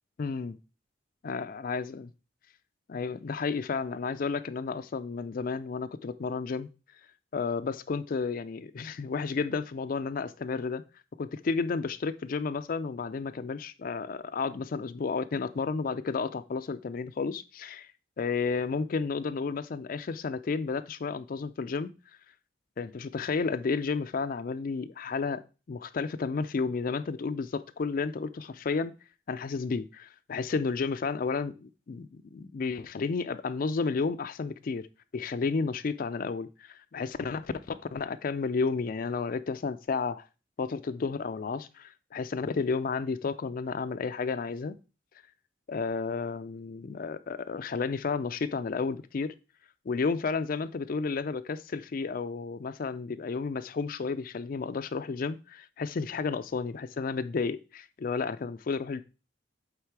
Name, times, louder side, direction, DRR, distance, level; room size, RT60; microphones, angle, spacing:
voice 1, 0.2-0.6 1.2-2.1 2.9-6.7 7.3-10.8 11.2-17.9 18.2-21.9 22.8-25.4 25.7-28.9 29.3-34.9 35.1-40.2 40.6-44.8 45.7-49.3 49.9-59.0, left 4 dB, 50° left, 0.4 m, -32 dB
8.1 x 3.7 x 4.6 m
head